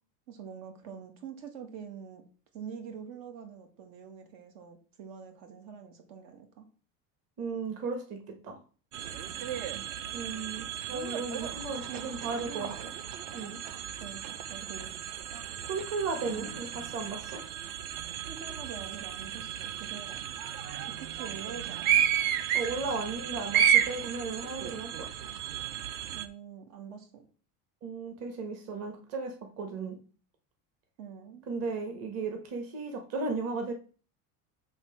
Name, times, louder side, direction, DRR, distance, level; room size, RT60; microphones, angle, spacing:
voice 1, 0.3-2.2 2.5-6.7 9.7-10.0 11.3-11.5 11.9-12.6 14.0-15.0 18.3-20.2 20.8-22.0 26.1-27.3 31.0-31.5, right 7 dB, 80° right, 5 dB, 1.9 m, -45 dB
voice 2, 7.4-8.6 10.1-12.9 13.3-13.6 15.6-17.4 22.5-25.1 27.8-30.0 31.5-33.7, right 4 dB, 40° right, 4 dB, 1.3 m, -35 dB
sound 1, 8.9-26.3, right 9 dB, 60° right, 0.7 m, -33 dB
7.2 x 3.5 x 5.8 m, 0.39 s
cardioid pair, 165°, 38 cm